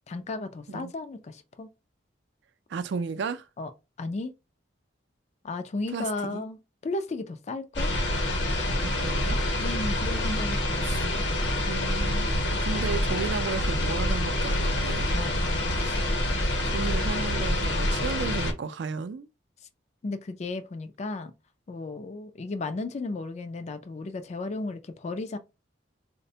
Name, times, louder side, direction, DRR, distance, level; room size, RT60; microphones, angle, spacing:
voice 1, 0.1-1.7 3.6-3.7 4.0-4.3 5.4-7.9 9.6-11.0 15.1-15.7 20.0-21.3 21.7-25.4, left 3 dB, 35° left, 0.3 m, -34 dB
voice 2, 2.7-3.4 5.9-6.4 8.8-9.4 10.8-11.0 11.7-12.3 12.6-15.2 15.8-16.0 16.6-19.3, right 5 dB, 65° right, 0.4 m, -34 dB
sound 1, 7.7-18.5, left 1 dB, 65° left, 0.9 m, -26 dB
4.0 x 2.1 x 2.7 m
head